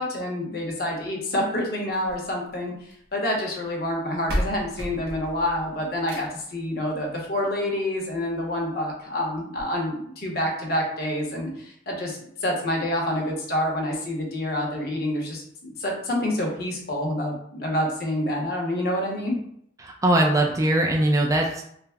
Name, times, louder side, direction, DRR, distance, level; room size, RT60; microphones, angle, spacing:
voice 1, 0.0-2.7 3.1-19.4, left 1 dB, 50° left, -1 dB, 0.8 m, -27 dB
sound 1, 1.9-3.1 3.9-4.0 4.3-6.6 7.9-8.0 8.5-8.6 8.8-8.9 9.5-9.6, equal, 55° right, 0.7 m, -33 dB
voice 2, 19.8-21.6, right 1 dB, 15° right, 0 dB, 0.3 m, -21 dB
3.3 x 2.0 x 3.4 m, 0.70 s
head